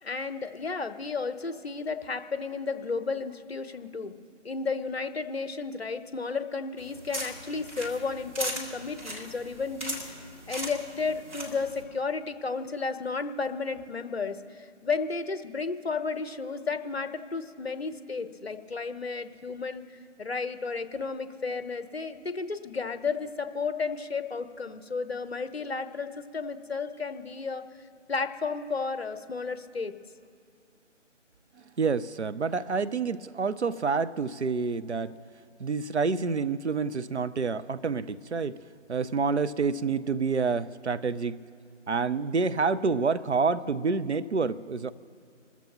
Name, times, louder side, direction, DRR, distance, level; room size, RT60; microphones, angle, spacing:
voice 1, 0.0-4.1 4.4-10.2 10.5-19.8 20.2-27.6 28.1-29.9, left 4 dB, 55° left, 11 dB, 0.9 m, -33 dB
sound 1, 6.8-11.8, right 1 dB, 10° right, 1.1 m, -38 dB
voice 2, 31.8-35.2 35.6-38.6 38.9-41.4 41.9-44.9, right 4 dB, 65° right, 14 dB, 0.6 m, -28 dB
27.5 x 14.0 x 3.0 m, 2.4 s
figure-of-eight pair, 155°, 37 cm